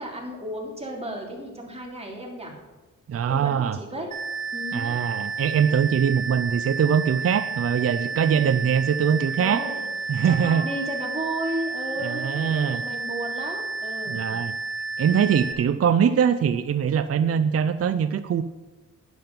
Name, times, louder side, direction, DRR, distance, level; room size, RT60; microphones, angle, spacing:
voice 1, 0.0-2.6 3.3-4.1 4.5-5.0 8.3-8.7 9.4-9.8 10.2-14.3, right 1 dB, 20° right, -1 dB, 3.0 m, -34 dB
voice 2, 3.1-3.8 4.7-9.6 10.1-10.6 12.0-12.8 14.1-14.6 15.0-18.4, right 8 dB, 45° right, 11 dB, 0.5 m, -22 dB
sound 1, 4.1-15.5, right 4 dB, 85° right, 1.6 m, -31 dB
11.5 x 10.5 x 5.4 m, 1.2 s
cardioid pair, 105°, 33 cm